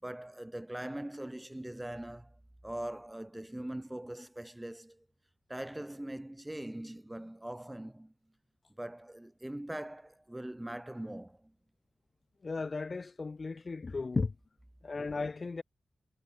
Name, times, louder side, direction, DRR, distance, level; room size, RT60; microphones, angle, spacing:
voice 1, 0.0-2.4 2.6-5.1 5.5-8.1 8.8-11.5, right 1 dB, 10° right, 6.0 m, -41 dB
voice 2, 12.4-14.3 14.8-15.6, left 4 dB, 40° left, 0.5 m, -35 dB
wide cardioid pair, 120°, 0 cm